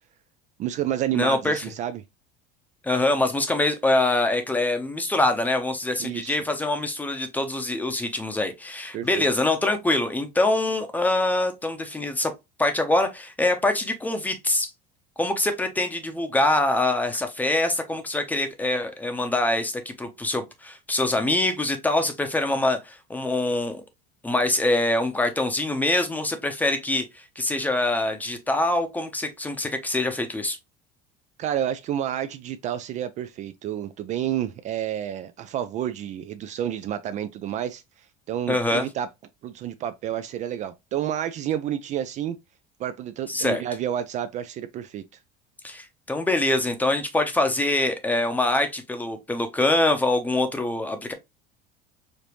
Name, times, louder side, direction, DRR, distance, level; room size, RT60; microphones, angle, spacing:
voice 1, 0.6-2.0 6.0-6.4 8.9-9.3 31.4-37.8 38.3-39.1 39.4-42.4 42.8-45.0, right 10 dB, 40° right, 0.4 m, -29 dB
voice 2, 1.1-1.6 2.8-12.3 12.6-14.7 15.2-23.8 24.2-30.6 38.5-38.9 43.3-43.6 45.6-51.1, left 2 dB, 10° left, 0.7 m, -24 dB
5.0 x 2.6 x 3.0 m
cardioid pair, 140°, 19 cm